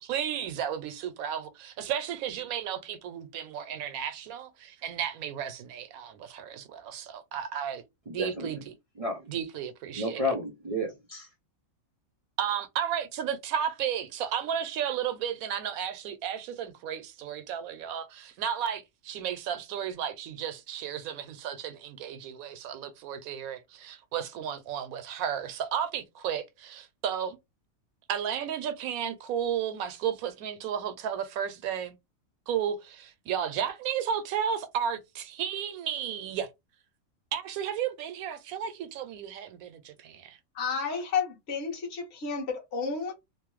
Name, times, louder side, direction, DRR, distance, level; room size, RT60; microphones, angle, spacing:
voice 1, 0.0-7.8 8.1-8.7 9.3-10.3 12.4-27.4 28.1-32.0 32.5-36.5 37.3-40.4, right 8 dB, 85° right, 1.0 m, -33 dB
voice 2, 8.1-8.6 9.0-9.2 10.0-11.3, equal, 60° right, 0.3 m, -32 dB
voice 3, 40.5-43.1, left 5 dB, 55° left, 1.2 m, -31 dB
2.9 x 2.0 x 3.0 m
omnidirectional pair, 1.4 m